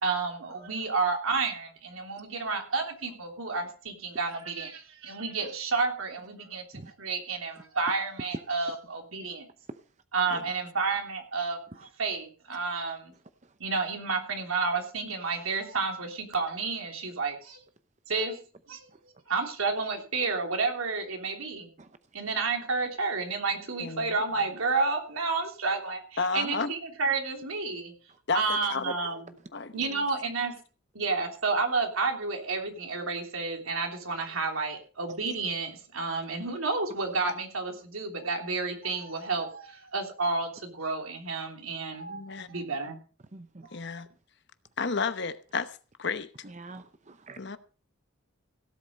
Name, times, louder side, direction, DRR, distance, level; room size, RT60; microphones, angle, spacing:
voice 1, 0.0-6.6 7.0-9.5 10.1-11.6 12.0-13.1 13.6-17.6 18.1-18.4 18.7-18.9 19.3-21.7 22.1-27.9 28.3-29.3 29.7-30.5 30.9-43.0 43.6-43.7, right 4 dB, 85° right, 3.2 m, -30 dB
voice 2, 23.8-24.1 26.2-26.7 28.3-29.2 29.5-30.0 42.1-42.5 43.7-44.1 44.8-46.3 47.4-47.6, left 4 dB, 55° left, 0.9 m, -32 dB
voice 3, 43.3-43.7 46.4-47.4, right 2 dB, 35° right, 0.8 m, -46 dB
17.0 x 8.0 x 5.3 m
head